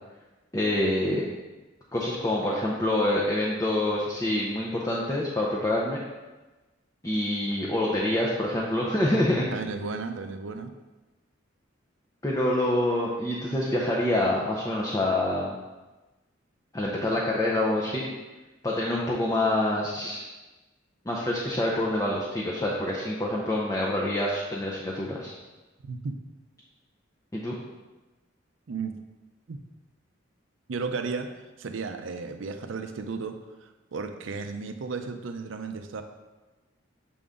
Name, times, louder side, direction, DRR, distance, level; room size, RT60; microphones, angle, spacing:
voice 1, 0.5-1.2 1.9-6.0 7.0-9.5 12.2-15.5 16.7-18.1 18.6-20.2 21.1-25.3 27.3-27.6, left 1 dB, 15° left, -4 dB, 0.6 m, -26 dB
voice 2, 9.5-10.7 25.8-26.2 28.7-28.9 29.5-29.6 30.7-36.0, right 4 dB, 80° right, 7 dB, 0.5 m, -34 dB
6.8 x 3.8 x 3.7 m, 1.2 s
head